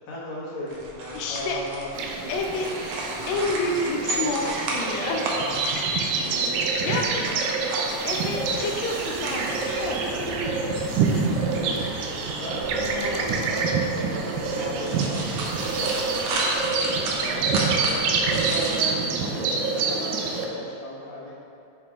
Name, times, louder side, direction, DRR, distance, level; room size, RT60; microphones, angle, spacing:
voice 1, 0.1-1.9 6.3-6.4 6.8-7.4 11.4-11.7 12.4-17.4 17.9-21.3, left 1 dB, 65° left, -6 dB, 2.5 m, -36 dB
sound 1, 0.7-18.8, right 2 dB, 70° right, 1.6 m, -34 dB
voice 2, 1.1-1.6 2.3-5.4 6.8-7.2 8.0-10.6 11.1-11.2, left 2 dB, 90° left, 0 dB, 1.5 m, -29 dB
sound 2, 1.9-20.5, right 4 dB, 90° right, 2.3 m, -27 dB
sound 3, 8.2-16.4, right 1 dB, 55° right, 1.4 m, -41 dB
7.5 x 4.6 x 3.6 m, 2.5 s
omnidirectional pair, 3.8 m